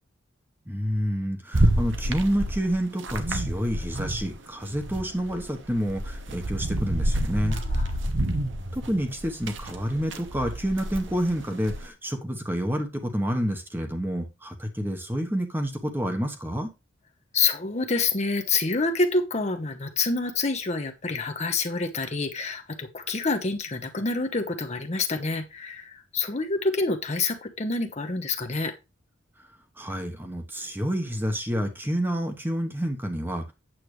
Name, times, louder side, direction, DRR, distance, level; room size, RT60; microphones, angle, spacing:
voice 1, 0.7-7.6 8.7-16.7 29.8-33.5, equal, 10° right, 4 dB, 1.1 m, -28 dB
sound 1, 1.5-4.4 4.6-11.9, right 1 dB, 70° right, 1.2 m, -28 dB
voice 2, 7.5-7.9 8.3-8.4 17.3-28.7, left 3 dB, 35° left, 5 dB, 1.0 m, -27 dB
8.8 x 7.6 x 3.2 m, 0.25 s
head